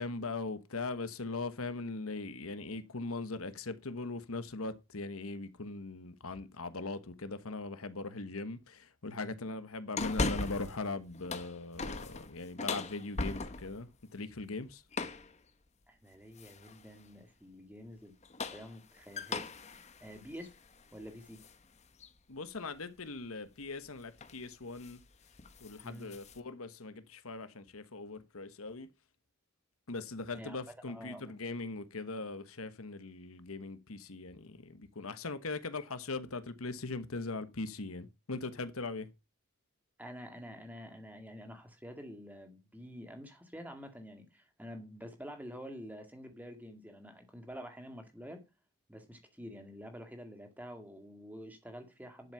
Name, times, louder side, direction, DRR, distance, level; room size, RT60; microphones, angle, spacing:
voice 1, 0.0-14.8 22.3-25.0 25.6-28.9 29.9-39.1, left 3 dB, 80° left, 1.2 m, -40 dB
sound 1, 10.0-10.8 11.1-13.8 14.9-15.3 16.4-16.8 18.1-21.6 22.0-22.1 23.6-23.9 24.2-24.5 24.8-25.0 25.3-26.4, left 3 dB, 30° left, 0.9 m, -38 dB
voice 2, 15.9-18.1 18.5-20.5 20.9-21.4 25.8-26.1 30.3-30.6 30.9-31.4 40.0-48.4 48.9-52.3, equal, 10° right, 2.0 m, -48 dB
11.5 x 7.6 x 5.7 m
head